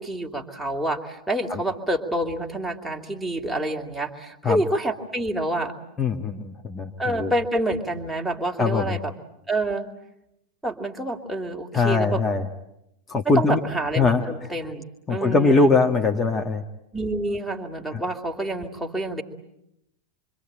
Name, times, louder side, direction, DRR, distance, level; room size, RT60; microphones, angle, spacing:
voice 1, 0.0-5.7 7.0-9.1 9.5-9.9 10.6-12.2 13.2-14.8 15.1-15.7 16.9-19.2, right 1 dB, ahead, 1 dB, 2.6 m, -27 dB
voice 2, 6.0-7.3 8.6-9.0 11.7-12.5 13.1-13.6 13.9-14.5 15.1-16.6 17.9-18.0, left 3 dB, 20° left, 4 dB, 1.7 m, -22 dB
27.0 x 25.0 x 8.8 m, 0.83 s
figure-of-eight pair, 90°, 0 cm